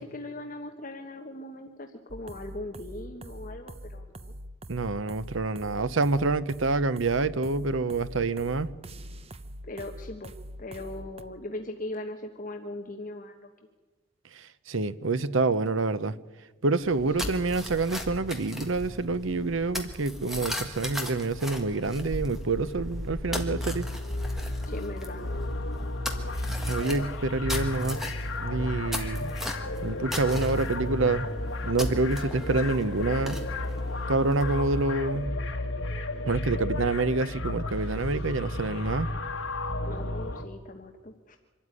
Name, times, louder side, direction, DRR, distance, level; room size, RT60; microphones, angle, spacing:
voice 1, 0.0-4.3 9.6-10.3 10.6-13.5 17.2-17.4 24.6-25.3 39.8-41.4, left 1 dB, 40° left, 1.3 m, -39 dB
sound 1, 2.1-11.2, equal, 30° right, 0.8 m, -43 dB
voice 2, 4.7-8.7 14.3-16.1 16.6-23.8 26.7-28.0 28.4-29.3 29.8-31.3 31.6-33.4 34.1-35.3 36.3-39.1, right 3 dB, 70° right, 0.8 m, -27 dB
sound 2, 16.8-34.7, left 1 dB, ahead, 1.7 m, -38 dB
sound 3, 23.2-40.4, left 2 dB, 75° left, 1.9 m, -33 dB
25.0 x 13.0 x 9.7 m
head